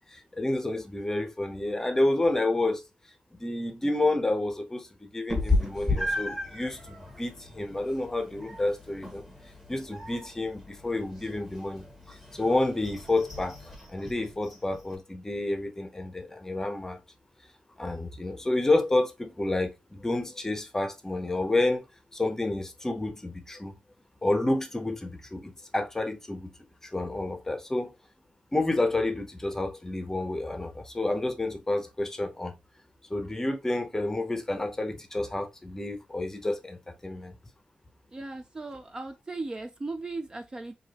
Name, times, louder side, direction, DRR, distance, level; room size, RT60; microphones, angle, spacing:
voice 1, 0.1-2.8 3.3-9.2 9.7-17.0 17.8-21.8 22.1-23.7 24.2-26.5 26.8-27.9 28.5-32.5 33.1-37.3, left 2 dB, 15° left, 0.7 m, -29 dB
Meow, 5.3-14.9, left 2 dB, 10° right, 1.2 m, -34 dB
voice 2, 38.1-40.8, right 3 dB, 25° right, 0.4 m, -37 dB
4.6 x 2.8 x 2.8 m
wide cardioid pair, 150°, 3 cm